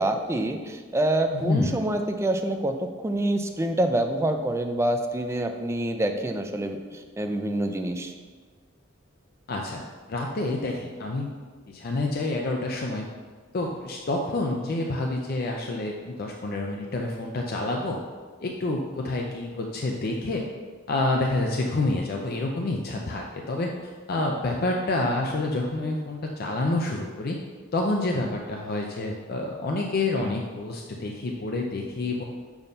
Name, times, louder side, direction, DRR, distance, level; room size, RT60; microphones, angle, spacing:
voice 1, 0.0-2.8 3.0-8.1, right 1 dB, 15° right, 5 dB, 0.4 m, -26 dB
voice 2, 1.4-1.8 9.5-9.8 10.1-11.3 11.7-13.1 13.5-18.0 18.4-20.5 20.9-23.7 24.1-27.4 27.7-32.2, left 2 dB, 50° left, 1 dB, 0.5 m, -28 dB
7.0 x 2.6 x 5.4 m, 1.4 s
head